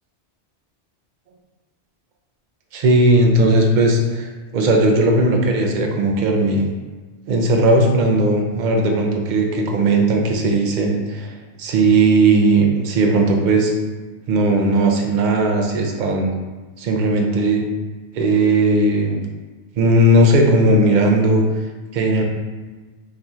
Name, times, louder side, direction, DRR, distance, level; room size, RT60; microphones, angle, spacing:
voice 1, 2.7-6.6 7.3-13.7 14.3-16.3 16.8-17.6 18.1-19.2 19.8-21.4 21.9-22.2, right 2 dB, 55° right, 2 dB, 0.6 m, -17 dB
4.7 x 2.8 x 2.3 m, 1.3 s
omnidirectional pair, 1.2 m